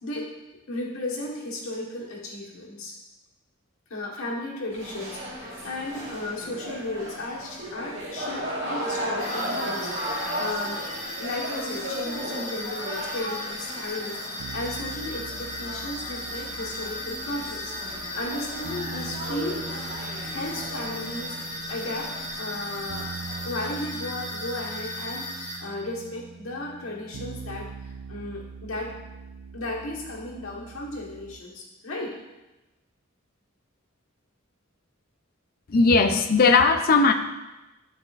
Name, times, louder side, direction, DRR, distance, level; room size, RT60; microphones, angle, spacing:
voice 1, 0.7-2.9 3.9-10.8 11.2-19.6 20.3-21.3 21.7-23.1 23.4-28.9 29.5-32.1, left 2 dB, 85° left, -3 dB, 1.4 m, -35 dB
sound 1, 4.7-23.4, equal, 65° right, 1.6 m, -36 dB
sound 2, 9.2-25.6, left 1 dB, 30° left, 1.4 m, -36 dB
sound 3, 14.4-31.4, right 5 dB, 80° right, 0.4 m, -42 dB
voice 2, 35.7-37.1, left 4 dB, 45° left, 7 dB, 0.4 m, -18 dB
8.1 x 4.8 x 2.5 m, 1.0 s
head